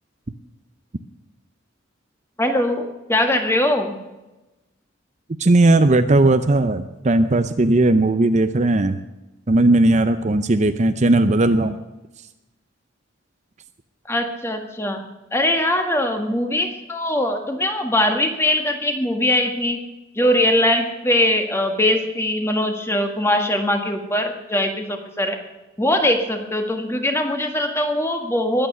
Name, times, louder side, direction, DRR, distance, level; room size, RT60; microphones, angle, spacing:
voice 1, 2.4-2.8 3.1-4.0 14.1-15.0 15.3-19.8 20.2-25.4 25.8-28.7, left 1 dB, 15° left, 5 dB, 1.7 m, -21 dB
voice 2, 5.4-9.0 9.5-11.8, right 2 dB, 35° right, 10 dB, 0.6 m, -17 dB
21.5 x 8.9 x 6.8 m, 1.1 s
head